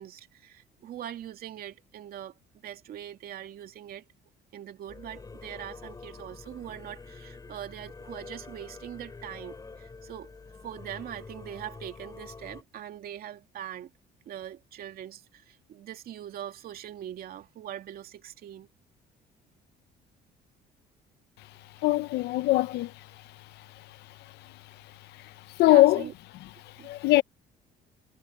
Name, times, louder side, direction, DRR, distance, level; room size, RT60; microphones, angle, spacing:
voice 1, 0.0-2.4 2.6-4.1 4.5-10.3 10.6-13.9 14.3-18.7 25.7-26.1 26.8-26.9, right 11 dB, 60° right, 2.6 m, -42 dB
Singing / Musical instrument, 4.9-12.6, left 4 dB, 20° left, 3.6 m, -46 dB
voice 2, 21.8-22.9 25.6-26.0 26.8-27.2, left 17 dB, 80° left, 0.8 m, -21 dB
cardioid pair, 110°, 17 cm